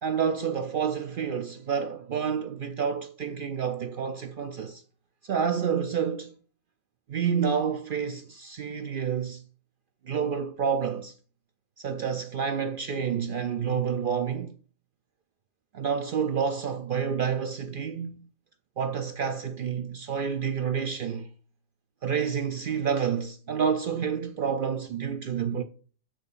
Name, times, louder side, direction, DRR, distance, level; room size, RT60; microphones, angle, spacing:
voice 1, 0.0-4.8 5.2-6.3 7.1-9.4 10.1-11.1 11.8-14.6 15.7-18.2 18.8-21.3 22.0-25.6, right 7 dB, 70° right, 0.5 m, -29 dB
7.5 x 6.7 x 2.5 m
omnidirectional pair, 1.4 m